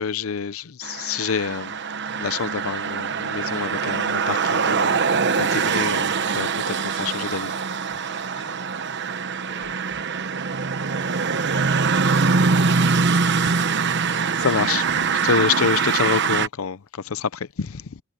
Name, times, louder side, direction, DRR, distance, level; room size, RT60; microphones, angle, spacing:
voice 1, 0.0-1.7 2.2-7.5 14.4-14.8 15.2-18.0, left 6 dB, 90° left, 0.6 m, -27 dB
sound 1, 0.8-16.5, right 5 dB, 60° right, 1.0 m, -23 dB
sound 2, 3.8-11.0, right 3 dB, 40° right, 6.8 m, -55 dB
voice 2, 8.3-10.6, left 2 dB, 30° left, 6.0 m, -52 dB
head